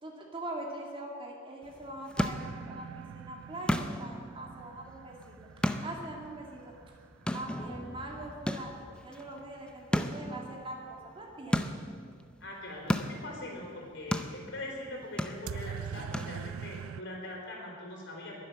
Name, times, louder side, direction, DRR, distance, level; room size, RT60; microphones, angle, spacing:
voice 1, 0.0-5.4 5.8-6.7 7.3-11.7, right 1 dB, 25° right, 0 dB, 2.1 m, -42 dB
sound 1, 1.6-16.8, equal, 5° left, 0.6 m, -37 dB
sound 2, 2.3-8.1 15.5-17.0, right 8 dB, 80° right, 0.3 m, -44 dB
voice 2, 12.4-18.5, left 1 dB, 60° left, -1 dB, 4.1 m, -42 dB
21.5 x 7.7 x 6.9 m, 2.1 s
head